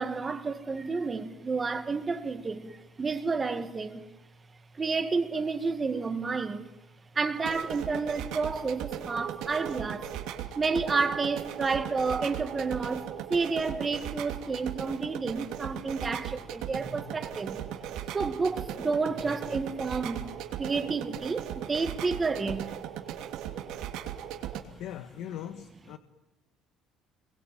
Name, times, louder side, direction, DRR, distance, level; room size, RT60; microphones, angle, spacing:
voice 1, 0.0-4.1 4.7-6.7 7.1-10.1 10.6-17.6 18.1-22.7, right 4 dB, 20° right, 1.9 m, -30 dB
sound 1, 7.4-24.6, right 10 dB, 75° right, 2.9 m, -38 dB
voice 2, 24.6-26.0, left 10 dB, 65° left, 1.4 m, -40 dB
28.5 x 22.5 x 9.2 m
cardioid pair, 155°, 0 cm